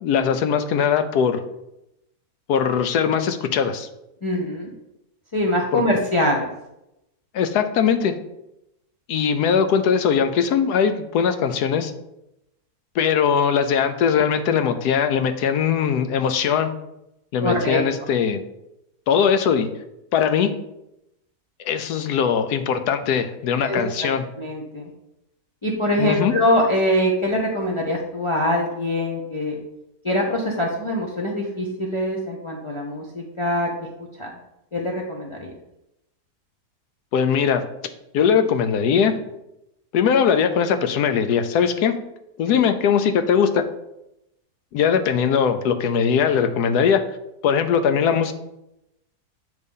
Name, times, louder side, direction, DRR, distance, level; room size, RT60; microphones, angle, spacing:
voice 1, 0.0-1.4 2.5-3.9 5.7-5.8 7.3-8.1 9.1-11.9 12.9-16.7 17.3-18.4 19.1-19.7 20.1-20.5 21.6-24.2 26.0-26.3 37.1-37.6 38.1-39.1 39.9-41.9 42.4-43.7 44.7-47.0 47.4-48.3, left 7 dB, 75° left, 8 dB, 1.2 m, -20 dB
voice 2, 4.2-4.7 5.3-6.5 17.4-17.8 23.6-24.1 24.4-24.9 25.6-29.6 30.0-33.7 34.2-34.3 34.7-35.5 42.4-42.6, left 1 dB, 45° left, -3 dB, 0.4 m, -23 dB
7.9 x 3.2 x 5.3 m, 0.87 s
omnidirectional pair, 1.7 m